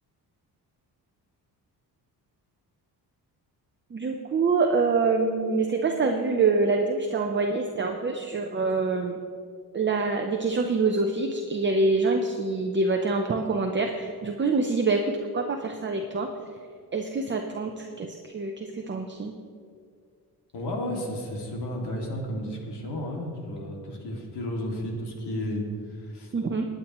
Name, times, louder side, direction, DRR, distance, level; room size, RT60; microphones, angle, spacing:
voice 1, 3.9-9.2 9.7-16.3 16.9-19.3 26.3-26.7, right 3 dB, 30° right, 3 dB, 0.7 m, -25 dB
voice 2, 20.5-26.3, equal, 90° left, -1 dB, 2.4 m, -33 dB
21.5 x 9.0 x 3.1 m, 2.2 s
cardioid pair, 120°, 39 cm